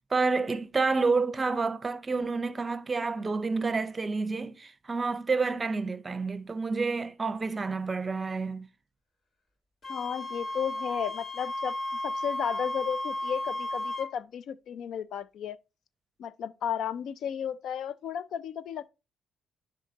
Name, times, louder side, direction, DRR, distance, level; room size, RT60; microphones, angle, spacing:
voice 1, 0.0-8.7, right 4 dB, 30° right, 0.6 m, -29 dB
Wind instrument woodwind instrument, 9.8-14.1, left 1 dB, 45° left, 3.5 m, -34 dB
voice 2, 9.9-11.7 12.0-15.6 16.2-18.9, left 8 dB, 75° left, 0.4 m, -34 dB
10.0 x 3.6 x 2.8 m
cardioid pair, 90°, 0 cm